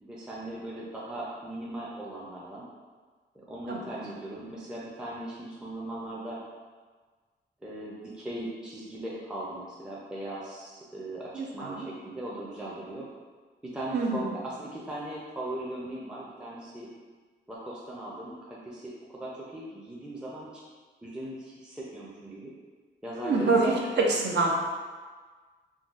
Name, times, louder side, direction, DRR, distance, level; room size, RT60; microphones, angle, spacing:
voice 1, 0.0-2.6 3.3-6.4 7.6-13.1 13.6-16.9 17.5-20.6 21.0-22.5 23.0-23.8, right 1 dB, 5° right, -6 dB, 0.5 m, -38 dB
voice 2, 11.3-11.9 13.9-14.2 23.1-23.7 24.0-24.5, right 3 dB, 65° right, -1 dB, 0.6 m, -26 dB
3.7 x 2.2 x 2.4 m, 1.4 s
cardioid pair, 85°, 19 cm